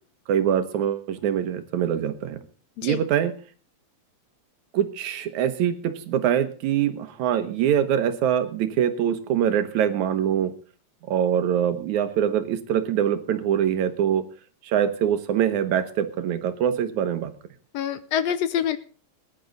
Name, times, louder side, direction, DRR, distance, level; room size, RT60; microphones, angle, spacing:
voice 1, 0.3-2.4 2.8-3.3 4.7-10.5 11.1-14.3 14.6-17.3, right 9 dB, 80° right, 10 dB, 2.5 m, -24 dB
voice 2, 17.7-18.8, left 9 dB, 70° left, 13 dB, 1.7 m, -26 dB
20.0 x 10.5 x 3.9 m, 0.39 s
omnidirectional pair, 3.3 m